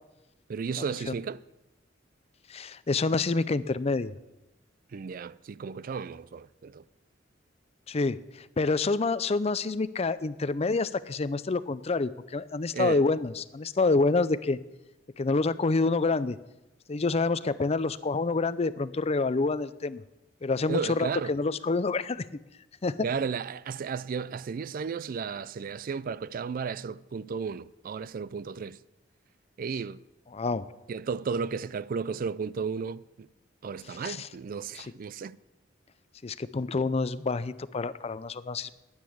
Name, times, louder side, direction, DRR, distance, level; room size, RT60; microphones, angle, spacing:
voice 1, 0.5-1.4 4.9-6.8 12.7-13.0 20.7-21.3 23.0-28.8 29.6-30.0 30.9-33.3 33.6-35.4, right 5 dB, 50° right, 0.4 m, -34 dB
voice 2, 2.5-4.1 7.9-8.2 8.6-14.6 15.2-16.4 16.9-20.0 20.4-22.2 22.8-23.0 30.3-30.7 34.0-34.3 34.8-34.9 36.2-38.7, left 3 dB, 35° left, 0.5 m, -27 dB
9.9 x 9.4 x 8.5 m
head